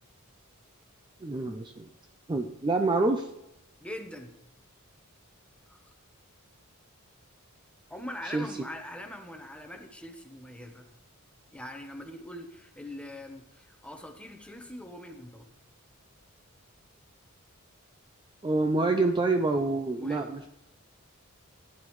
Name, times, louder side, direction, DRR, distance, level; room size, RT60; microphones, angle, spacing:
voice 1, 1.2-1.9 2.3-3.3 8.3-8.5 18.4-20.5, right 3 dB, 20° right, 5 dB, 0.5 m, -27 dB
voice 2, 3.8-4.3 5.7-5.9 7.9-10.9 11.5-15.5 20.0-20.3, left 1 dB, 5° left, 4 dB, 1.0 m, -42 dB
15.5 x 9.7 x 3.1 m, 0.85 s
head